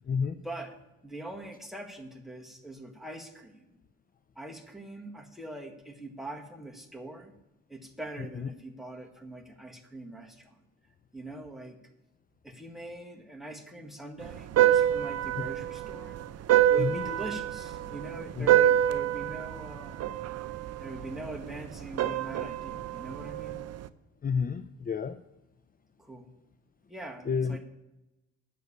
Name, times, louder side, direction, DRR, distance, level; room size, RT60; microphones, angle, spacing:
voice 1, 0.4-3.7 4.3-7.3 7.7-10.6 11.1-11.8 12.4-16.2 16.7-20.0 20.8-23.6 26.0-26.3 26.9-27.6, right 1 dB, ahead, 1 dB, 1.6 m, -42 dB
sound 1, 14.2-23.9, right 11 dB, 55° right, 0.6 m, -27 dB
voice 2, 24.2-25.2 27.3-27.6, left 6 dB, 30° left, 12 dB, 0.5 m, -30 dB
9.4 x 6.8 x 8.4 m, 0.96 s
cardioid pair, 90°, 30 cm